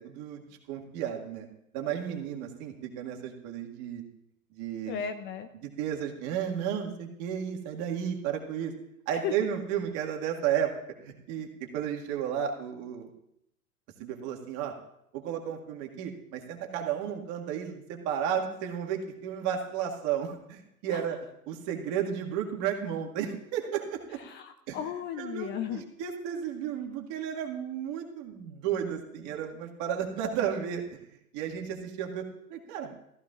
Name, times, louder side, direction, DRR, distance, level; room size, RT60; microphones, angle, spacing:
voice 1, 0.0-1.5 1.7-4.0 4.5-5.0 5.6-8.7 9.1-10.7 11.0-13.1 14.0-14.7 15.1-21.2 21.5-24.2 24.7-24.8 25.2-31.0 31.3-32.9, right 9 dB, 40° right, 2 dB, 2.0 m, -33 dB
voice 2, 4.9-5.5 9.1-9.3 20.9-21.0 24.2-25.8, left 9 dB, 25° left, 9 dB, 0.5 m, -35 dB
16.0 x 14.0 x 2.5 m, 0.79 s
hypercardioid pair, 100°, 43 cm